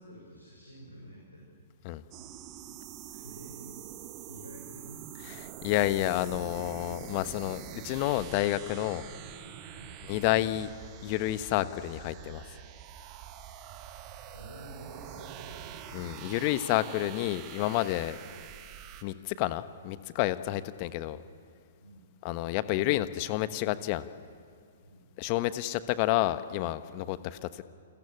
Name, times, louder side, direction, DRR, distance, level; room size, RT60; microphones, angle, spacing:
voice 1, 0.0-1.5 3.1-3.7 4.2-5.1 9.7-10.0 14.3-15.9 21.8-22.1 24.8-25.1 27.0-27.1, equal, 85° left, -2 dB, 6.5 m, -49 dB
sound 1, 2.1-19.0, right 10 dB, 30° right, 1.8 m, -45 dB
voice 2, 5.6-9.0 10.1-10.7 11.0-12.5 15.9-18.2 19.0-21.2 22.2-24.1 25.2-27.6, left 15 dB, 35° left, 13 dB, 1.2 m, -30 dB
28.5 x 22.0 x 8.5 m, 2.3 s
figure-of-eight pair, 115°, 0 cm